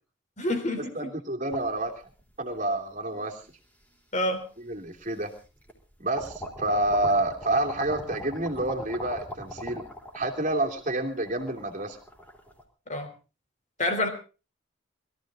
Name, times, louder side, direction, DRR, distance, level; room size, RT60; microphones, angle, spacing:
voice 1, 0.4-1.1 4.1-4.4 12.9-13.1 13.8-14.1, left 1 dB, 40° left, 6 dB, 3.4 m, -27 dB
voice 2, 0.9-1.9 2.4-3.4 4.6-5.3 6.0-9.8 10.1-12.0, right 1 dB, 40° right, 3 dB, 2.9 m, -28 dB
sound 1, 1.5-2.7 3.4-3.5 4.7-4.8 5.2-5.8 6.1-12.6, equal, 10° left, 3.8 m, -40 dB
22.0 x 14.0 x 3.8 m, 0.34 s
head